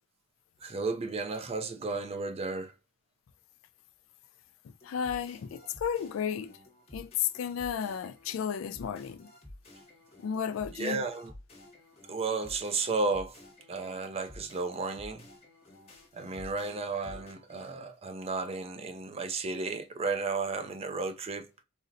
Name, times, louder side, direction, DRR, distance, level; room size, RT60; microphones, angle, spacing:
voice 1, 0.6-2.7 10.7-11.3 12.1-13.4 13.7-15.2 16.1-21.5, right 3 dB, 30° right, 0.3 m, -33 dB
voice 2, 4.8-6.5 6.9-9.3 10.2-11.0, left 8 dB, 65° left, 0.3 m, -33 dB
sound 1, 4.8-17.7, left 1 dB, 30° left, 0.9 m, -52 dB
3.9 x 2.0 x 2.4 m
head